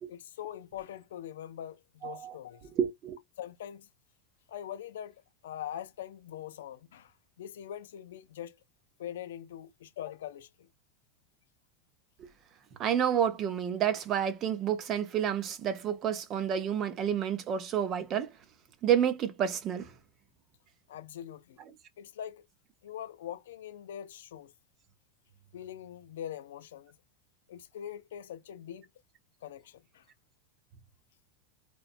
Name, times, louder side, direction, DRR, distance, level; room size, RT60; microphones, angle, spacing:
voice 1, 0.1-2.6 3.4-3.9 4.5-8.6 9.0-10.7 20.9-21.6 22.0-22.5 22.8-24.5 25.5-27.0 27.5-28.9 29.4-30.0, left 10 dB, 85° left, 0.4 m, -43 dB
voice 2, 2.0-2.4 2.8-3.2 12.8-18.3 18.8-19.9, right 9 dB, 35° right, 0.6 m, -29 dB
2.9 x 2.1 x 2.5 m
supercardioid pair, 125°, 0 cm